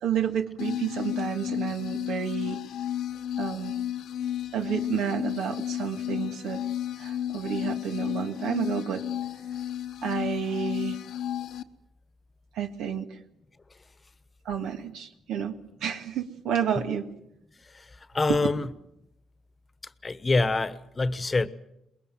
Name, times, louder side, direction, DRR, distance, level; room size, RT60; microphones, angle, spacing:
voice 1, 0.0-2.6 3.4-3.7 4.5-6.6 7.0-9.0 10.0-11.0 12.6-13.1 14.5-17.1 18.3-18.4, right 8 dB, 85° right, 1.9 m, -30 dB
sound 1, 0.6-11.6, left 11 dB, 80° left, 1.1 m, -33 dB
voice 2, 18.1-18.7 20.0-21.5, left 3 dB, 25° left, 1.2 m, -25 dB
23.5 x 21.0 x 7.6 m
cardioid pair, 90°, 0 cm